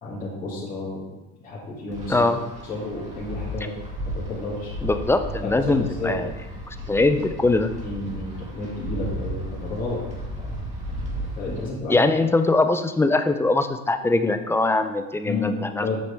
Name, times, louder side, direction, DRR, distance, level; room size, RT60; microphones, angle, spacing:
voice 1, 0.0-1.1 1.4-2.3 2.6-3.8 4.1-4.7 5.4-6.2 7.8-10.0 10.4-10.6 11.2-12.0 15.2-16.0, left 2 dB, 25° left, -9 dB, 2.6 m, -31 dB
Wind, 1.9-11.7, right 1 dB, 25° right, 2.0 m, -34 dB
voice 2, 4.8-6.3 6.9-7.7 11.9-16.0, left 2 dB, 10° left, 9 dB, 0.3 m, -21 dB
8.1 x 6.1 x 3.4 m, 1.0 s
supercardioid pair, 120°, 30 cm